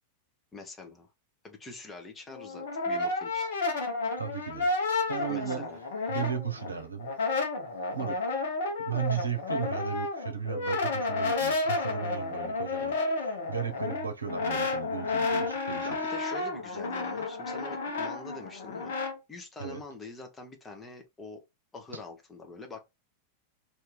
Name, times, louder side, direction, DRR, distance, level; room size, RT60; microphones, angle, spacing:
voice 1, 0.5-1.1 1.4-3.5 5.3-5.8 15.8-18.9 19.3-21.4 21.7-22.8, left 3 dB, 15° left, 0.9 m, -44 dB
Brass instrument, 2.3-6.7 7.0-19.2, left 3 dB, 60° left, 1.0 m, -31 dB
voice 2, 4.2-4.7 5.1-5.7 6.1-7.1 7.9-8.2 8.8-15.9 19.6-19.8, right 7 dB, 75° right, 0.8 m, -35 dB
2.8 x 2.7 x 3.6 m
figure-of-eight pair, 90°, 0 cm